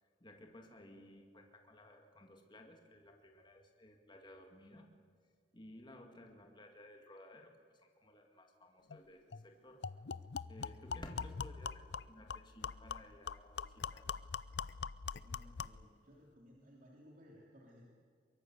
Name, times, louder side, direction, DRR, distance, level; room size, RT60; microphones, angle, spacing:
voice 1, 0.0-4.9 5.5-9.9 10.5-14.1, left 1 dB, 25° left, 3 dB, 2.1 m, -56 dB
sound 1, 8.9-9.0 9.3-9.4 9.8-15.9, left 5 dB, 70° left, 0.6 m, -43 dB
voice 2, 15.2-17.8, equal, 50° right, -2 dB, 3.4 m, -60 dB
23.5 x 23.0 x 8.1 m, 2.1 s
head